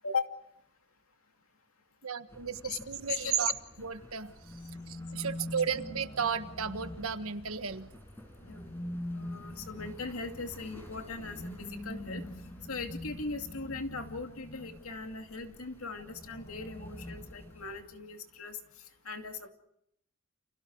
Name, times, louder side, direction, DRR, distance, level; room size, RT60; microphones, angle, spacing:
voice 1, 2.0-3.5 3.8-4.6 4.9-7.9, right 7 dB, 75° right, 9 dB, 1.5 m, -34 dB
sound 1, 2.3-17.8, left 1 dB, 10° left, 5.8 m, -53 dB
sound 2, 4.4-7.7 8.4-15.0 16.0-17.9, left 1 dB, 30° left, 1.8 m, -44 dB
voice 2, 9.1-12.2 12.7-18.6 19.0-19.5, left 4 dB, 80° left, 5 dB, 2.5 m, -39 dB
30.0 x 28.0 x 4.8 m, 0.75 s
head